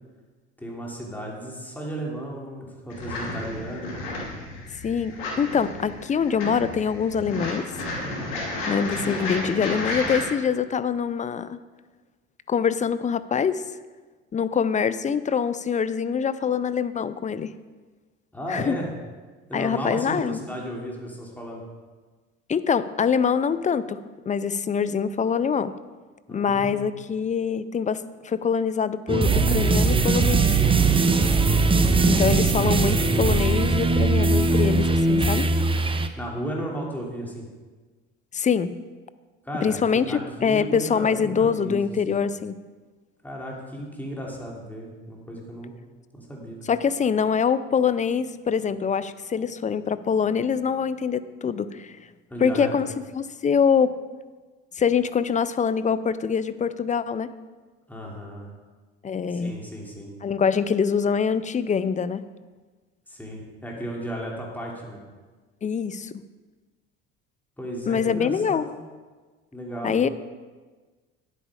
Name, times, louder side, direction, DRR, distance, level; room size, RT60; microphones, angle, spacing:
voice 1, 0.6-4.1 8.6-9.0 18.3-18.9 19.5-21.6 26.3-26.9 31.1-31.9 36.2-37.5 39.4-42.2 43.2-45.7 46.1-46.6 52.3-52.9 57.9-58.5 59.3-60.1 63.1-65.0 67.6-68.6 69.5-70.1, right 1 dB, 5° left, -2 dB, 3.0 m, -35 dB
sound 1, 2.9-10.2, left 2 dB, 80° left, 2.7 m, -32 dB
voice 2, 4.8-7.7 8.7-11.6 12.5-13.6 14.3-17.5 18.5-18.8 19.5-20.4 22.5-24.0 24.3-25.7 26.3-30.4 32.0-35.5 38.3-38.7 39.6-42.6 46.7-52.0 52.4-52.9 53.1-53.9 54.8-57.3 59.0-59.6 60.2-62.2 65.6-66.2 67.9-68.7 69.8-70.1, left 6 dB, 25° left, 15 dB, 0.5 m, -24 dB
sound 2, 29.1-36.1, right 3 dB, 20° right, 0.7 m, -20 dB
9.9 x 8.3 x 5.0 m, 1.3 s
supercardioid pair, 80°, 29 cm